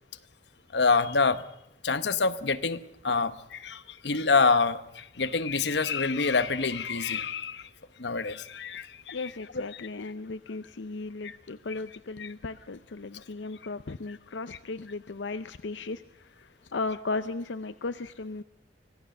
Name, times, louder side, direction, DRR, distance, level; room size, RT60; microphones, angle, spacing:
voice 1, 0.7-1.4 1.8-7.7 8.0-9.2 9.5-9.9 11.2-11.4 12.2-12.3, left 4 dB, 70° left, 11 dB, 1.0 m, -27 dB
voice 2, 9.1-18.4, left 3 dB, 90° left, 12 dB, 0.6 m, -36 dB
25.0 x 16.5 x 6.6 m, 0.84 s
head